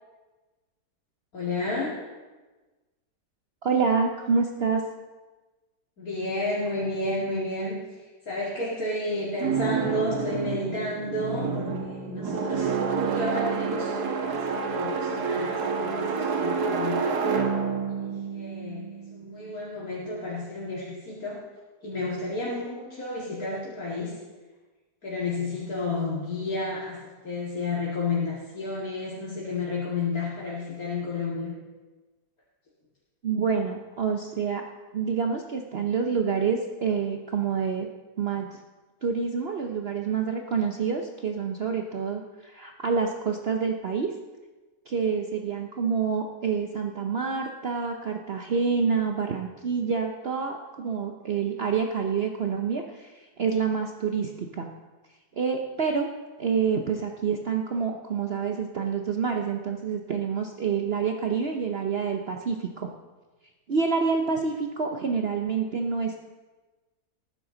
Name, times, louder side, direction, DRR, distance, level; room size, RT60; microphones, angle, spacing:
voice 1, 1.3-1.9 6.0-17.0 17.9-18.8 19.1-21.4 21.8-24.1 25.0-27.0 27.2-31.5, left 2 dB, 65° left, -7 dB, 2.6 m, -31 dB
voice 2, 3.6-4.8 33.2-34.6 34.9-37.9 38.2-38.6 39.0-44.1 44.9-54.7 55.4-56.1 56.4-62.9 63.7-66.2, right 5 dB, 50° right, 3 dB, 0.8 m, -27 dB
sound 1, 9.4-19.4, right 5 dB, 80° right, 1.7 m, -28 dB
19.0 x 10.0 x 3.9 m, 1.2 s
omnidirectional pair, 1.7 m